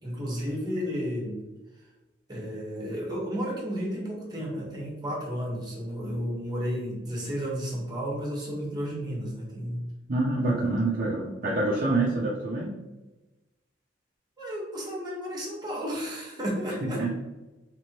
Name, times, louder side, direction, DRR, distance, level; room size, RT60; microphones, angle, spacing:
voice 1, 0.0-1.4 2.3-9.8 14.4-17.0, equal, 25° right, -3 dB, 1.2 m, -32 dB
voice 2, 10.1-12.8 16.8-17.1, right 2 dB, 50° right, -4 dB, 0.6 m, -26 dB
3.3 x 3.2 x 2.9 m, 1.1 s
head